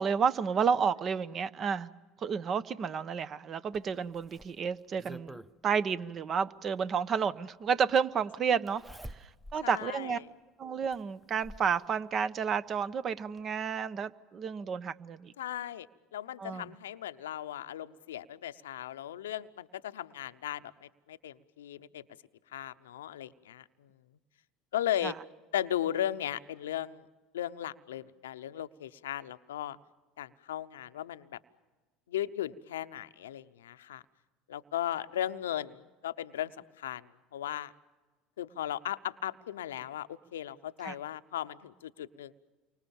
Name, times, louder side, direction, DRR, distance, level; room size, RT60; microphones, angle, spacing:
voice 1, 0.0-1.9 2.2-5.4 5.6-9.2 9.5-10.2 10.6-15.3 16.4-16.7 25.0-25.1 40.8-40.9, right 6 dB, 40° right, 1.0 m, -31 dB
Zipper (clothing), 3.7-5.5 6.9-7.0 8.7-9.6 10.1-10.2 10.9-11.7 12.9-13.0 13.4-13.5, right 1 dB, 5° right, 0.9 m, -48 dB
voice 2, 9.6-10.3 15.4-22.1 22.5-24.0 24.7-25.1 25.5-27.1 27.3-29.8 30.2-31.4 32.1-34.0 34.5-37.7 38.4-42.3, left 11 dB, 85° left, 0.8 m, -37 dB
29.5 x 24.5 x 7.2 m
hypercardioid pair, 75°, 0 cm